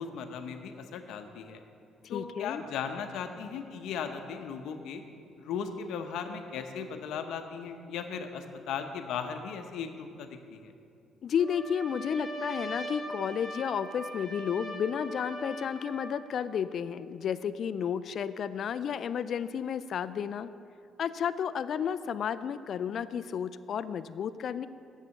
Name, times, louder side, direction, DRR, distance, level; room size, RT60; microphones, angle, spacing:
voice 1, 0.0-1.6 2.1-5.0 5.4-10.7, left 6 dB, 80° left, 7 dB, 0.8 m, -37 dB
voice 2, 2.0-2.6 11.2-20.5 21.0-24.7, left 8 dB, 55° left, 14 dB, 0.3 m, -32 dB
Trumpet, 11.4-16.2, right 1 dB, 5° right, 2.0 m, -40 dB
8.2 x 7.4 x 7.0 m, 2.5 s
cardioid pair, 105°, 0 cm